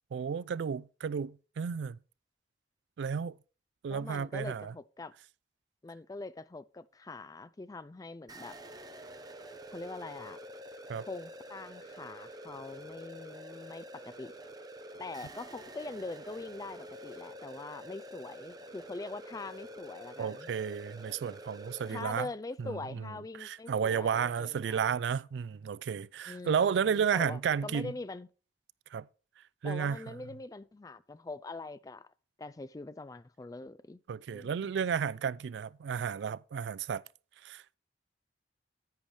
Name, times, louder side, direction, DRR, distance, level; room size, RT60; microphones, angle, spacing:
voice 1, 0.1-2.0 3.0-3.4 3.8-4.7 10.9-11.1 20.2-22.3 22.6-23.0 23.4-27.9 28.9-29.1 29.6-30.1 34.1-37.0 37.4-37.8, right 7 dB, 80° right, 0.3 m, -32 dB
voice 2, 3.9-5.1 5.8-8.6 9.7-10.4 11.0-14.4 15.0-20.5 21.9-24.9 26.3-28.3 29.6-32.1 32.4-34.0 34.3-34.7, left 3 dB, 20° left, 0.3 m, -43 dB
sound 1, 8.3-22.0, equal, 20° right, 0.8 m, -47 dB
10.5 x 8.8 x 3.2 m
head